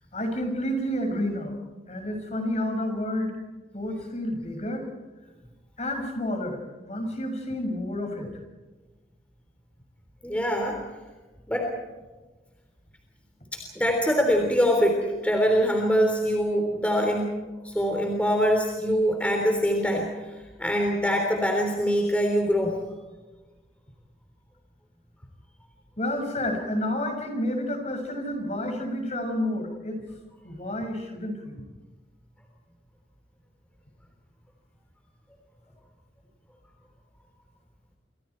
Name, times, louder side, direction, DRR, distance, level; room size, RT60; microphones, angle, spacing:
voice 1, 0.1-1.6 1.9-3.4 3.7-4.9 5.8-8.3 26.0-30.0 30.4-31.6, left 1 dB, 40° left, 4 dB, 5.9 m, -30 dB
voice 2, 10.2-10.8 11.5-11.7 13.5-20.1 20.6-22.7, equal, 5° left, 1 dB, 3.5 m, -24 dB
28.5 x 25.5 x 4.6 m, 1.2 s
head